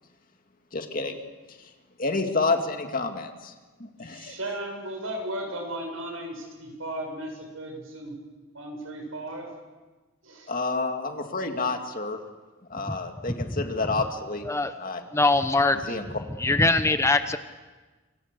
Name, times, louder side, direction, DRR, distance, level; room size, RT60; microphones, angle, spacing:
voice 1, 0.7-1.1 2.0-3.5 3.8-4.4 10.5-12.2 12.7-14.5 14.8-15.0 15.9-16.0, left 3 dB, 45° left, 5 dB, 2.3 m, -29 dB
voice 2, 4.0-8.1 8.5-9.5 10.2-10.5, right 1 dB, 80° right, 2 dB, 7.4 m, -35 dB
voice 3, 15.1-16.0 16.4-17.4, left 2 dB, 15° left, 10 dB, 0.9 m, -23 dB
27.5 x 26.0 x 6.9 m, 1.3 s
head